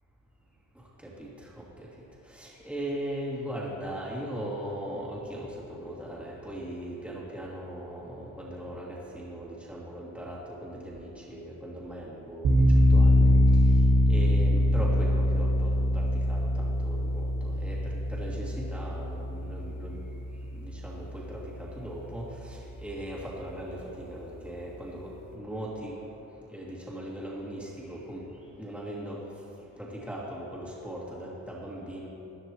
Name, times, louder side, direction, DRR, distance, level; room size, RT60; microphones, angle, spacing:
voice 1, 1.0-1.9 2.3-12.6 12.9-13.4 14.1-20.1 20.5-26.0 26.5-28.2 28.6-29.2 29.8-32.1, right 1 dB, 5° right, -5 dB, 2.6 m, -39 dB
sound 1, 12.4-21.3, left 1 dB, 60° right, 1.7 m, -24 dB
15.5 x 10.0 x 3.1 m, 2.9 s
cardioid pair, 90°, 30 cm